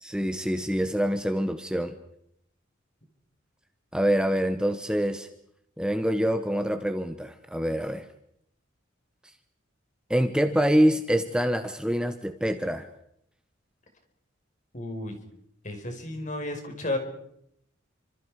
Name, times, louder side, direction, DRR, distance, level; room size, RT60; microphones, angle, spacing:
voice 1, 0.0-1.9 3.9-5.3 5.8-8.0 10.1-12.9, equal, 5° right, 7 dB, 1.2 m, -25 dB
voice 2, 14.7-15.2 15.6-17.0, left 2 dB, 40° left, 5 dB, 5.1 m, -32 dB
29.5 x 26.5 x 5.0 m, 0.73 s
head